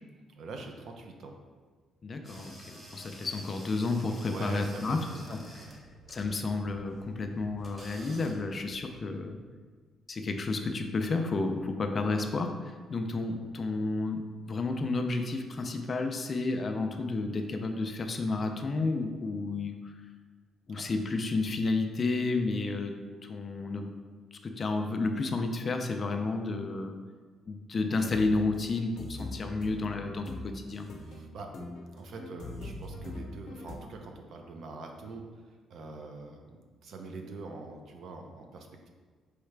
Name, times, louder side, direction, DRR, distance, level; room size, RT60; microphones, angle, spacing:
voice 1, 0.3-1.4 4.2-5.8 20.7-20.8 31.0-31.7 31.9-38.9, right 3 dB, 60° right, 3 dB, 0.5 m, -44 dB
voice 2, 2.0-5.0 5.3-5.4 6.1-9.4 10.1-14.2 14.5-19.9 20.7-23.0 23.2-23.9 24.3-27.0 27.5-30.9, left 3 dB, 35° left, 5 dB, 0.4 m, -31 dB
sound 1, 2.2-8.9, equal, 20° right, 1.0 m, -51 dB
sound 2, 27.8-33.8, left 1 dB, 65° left, 0.8 m, -42 dB
4.7 x 3.2 x 3.3 m, 1.5 s
cardioid pair, 135°, 0 cm